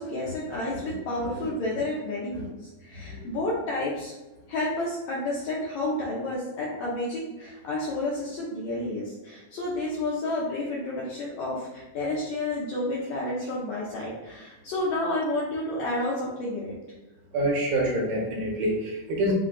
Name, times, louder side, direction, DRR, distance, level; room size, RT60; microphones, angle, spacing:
voice 1, 0.0-4.1 4.5-16.7, left 1 dB, 80° left, -6 dB, 1.7 m, -30 dB
voice 2, 3.1-3.4 17.3-19.3, right 1 dB, 75° right, -2 dB, 2.6 m, -27 dB
5.6 x 2.3 x 3.8 m, 1.1 s
omnidirectional pair, 4.1 m